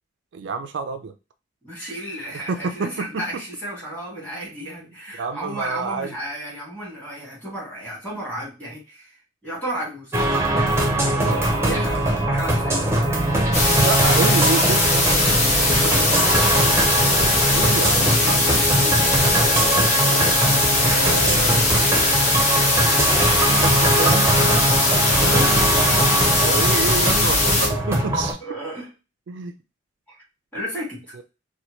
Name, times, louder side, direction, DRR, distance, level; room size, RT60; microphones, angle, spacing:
voice 1, 0.3-1.1 2.5-3.4 5.2-6.1 11.1-11.5 13.7-15.1 17.2-18.2 20.0-20.5 20.8-21.7 23.4-25.3 26.4-28.4 29.3-29.6 31.1-31.2, right 4 dB, 65° right, 8 dB, 0.3 m, -29 dB
voice 2, 1.6-9.2 9.4-10.5 11.2-12.9 15.6-17.4 18.2-19.4 25.2-25.6 28.4-28.9 30.1-30.2 30.5-31.2, equal, 10° left, -4 dB, 1.6 m, -33 dB
sound 1, 10.1-28.3, right 1 dB, 15° right, 0.6 m, -21 dB
sound 2, 13.5-27.7, left 2 dB, 35° left, 1.0 m, -20 dB
4.2 x 2.2 x 2.9 m, 0.29 s
head